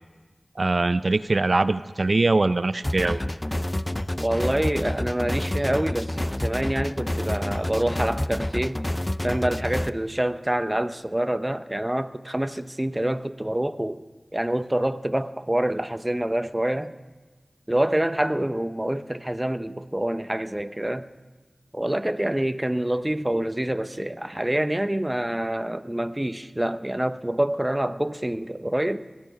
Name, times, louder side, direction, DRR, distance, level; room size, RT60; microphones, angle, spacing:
voice 1, 0.6-3.2, right 2 dB, 60° right, 0.4 m, -22 dB
sound 1, 2.8-9.9, left 1 dB, 25° left, 0.5 m, -28 dB
voice 2, 4.2-8.8 9.2-14.0 14.3-16.9 17.7-21.1 21.7-29.1, right 1 dB, 20° right, 0.7 m, -26 dB
20.0 x 13.0 x 5.2 m
wide cardioid pair, 45°, 0 cm